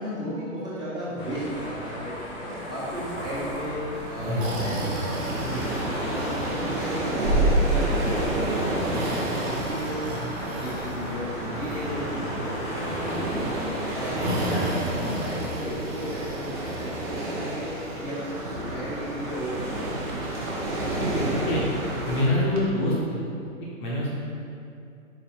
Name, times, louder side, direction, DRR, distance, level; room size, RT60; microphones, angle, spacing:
voice 1, 0.0-20.2, equal, 10° right, -10 dB, 1.5 m, -34 dB
sound 1, 1.2-14.7, left 1 dB, 10° left, 0.7 m, -37 dB
Breathing, 3.0-22.7, right 1 dB, 50° right, 1.4 m, -33 dB
sound 2, 3.9-22.2, right 1 dB, 25° right, 1.1 m, -31 dB
voice 2, 21.0-21.6 22.1-23.2 23.8-24.1, left 1 dB, 35° left, -6 dB, 1.0 m, -25 dB
5.4 x 4.9 x 4.3 m, 2.5 s
figure-of-eight pair, 120°, 42 cm